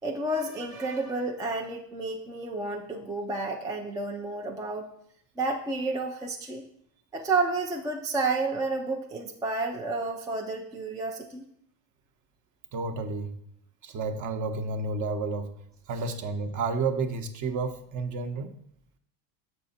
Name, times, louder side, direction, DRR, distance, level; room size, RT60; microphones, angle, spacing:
voice 1, 0.0-4.9 5.4-6.6 7.1-11.5, right 3 dB, 10° right, 1 dB, 0.3 m, -30 dB
voice 2, 12.7-13.3 13.8-15.5 15.9-18.5, right 3 dB, 40° right, 7 dB, 0.8 m, -31 dB
6.7 x 4.6 x 4.1 m, 0.70 s
supercardioid pair, 110°, 48 cm